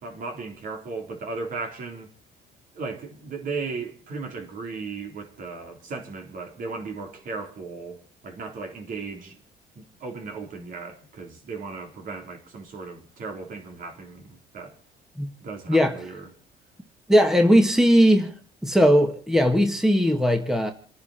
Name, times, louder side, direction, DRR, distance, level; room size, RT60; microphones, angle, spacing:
voice 1, 0.0-2.1 2.7-9.4 9.8-14.8 15.4-16.3, right 4 dB, 55° right, 4.0 m, -36 dB
voice 2, 17.1-18.3 18.6-20.7, equal, 5° right, 1.7 m, -18 dB
28.0 x 10.5 x 4.4 m
cardioid pair, 110°, 17 cm